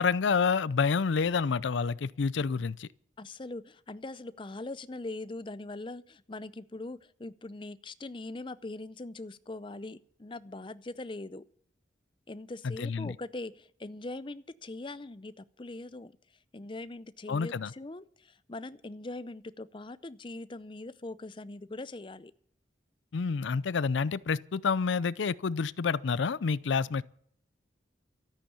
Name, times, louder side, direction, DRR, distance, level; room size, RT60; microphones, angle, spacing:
voice 1, 0.0-2.9 12.6-13.2 17.3-17.7 23.1-27.0, left 5 dB, 75° left, 0.5 m, -28 dB
voice 2, 3.2-11.4 12.3-16.1 16.5-22.3, left 2 dB, 25° left, 0.5 m, -41 dB
13.5 x 9.2 x 8.6 m
head